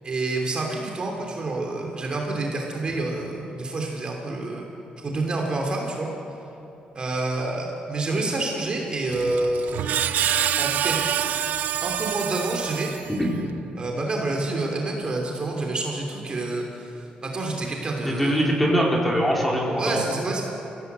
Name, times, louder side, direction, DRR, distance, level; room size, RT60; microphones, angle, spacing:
voice 1, 0.0-4.7 5.0-6.1 6.9-10.0 10.6-11.1 11.8-12.9 13.8-18.5 19.8-20.4, right 2 dB, 35° right, 0 dB, 2.9 m, -28 dB
Screech, 9.1-13.4, right 10 dB, 75° right, 0.7 m, -26 dB
voice 2, 18.0-20.0, equal, 5° left, -3 dB, 4.0 m, -22 dB
25.5 x 16.5 x 8.1 m, 3.0 s
cardioid pair, 140°, 3 cm